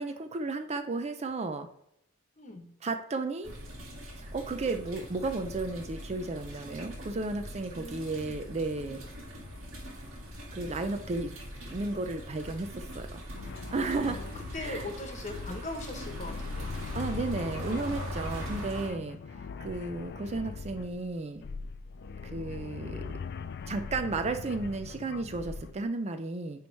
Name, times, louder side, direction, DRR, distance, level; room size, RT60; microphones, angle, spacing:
voice 1, 0.0-1.7 2.8-3.5 4.2-9.0 10.5-11.3 11.7-13.2 13.7-14.2 14.5-14.9 16.9-19.2 19.6-21.4 22.2-23.0 23.7-26.7, right 3 dB, 30° right, 8 dB, 0.4 m, -33 dB
voice 2, 2.4-2.7 7.8-8.4 14.0-16.7, left 2 dB, 35° left, 4 dB, 1.1 m, -41 dB
sound 1, 3.4-18.9, equal, 65° right, 1.9 m, -42 dB
sound 2, 13.3-25.8, left 4 dB, 50° left, 0.4 m, -41 dB
9.3 x 3.1 x 4.6 m, 0.75 s
head